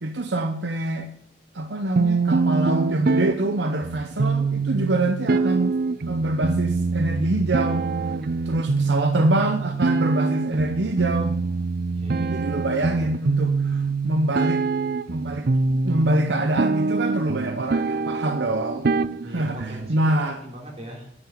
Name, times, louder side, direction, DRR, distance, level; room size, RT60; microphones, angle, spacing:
voice 1, 0.0-1.1 1.5-5.8 6.1-7.8 8.5-11.4 12.3-14.6 15.1-15.5 15.8-18.9 19.2-20.4, right 1 dB, 75° right, 6 dB, 1.0 m, -25 dB
sound 1, 2.0-19.9, right 4 dB, 55° right, 0.5 m, -25 dB
voice 2, 11.9-12.6 19.2-21.1, equal, 35° right, -1 dB, 3.5 m, -40 dB
9.9 x 7.2 x 9.1 m, 0.74 s
head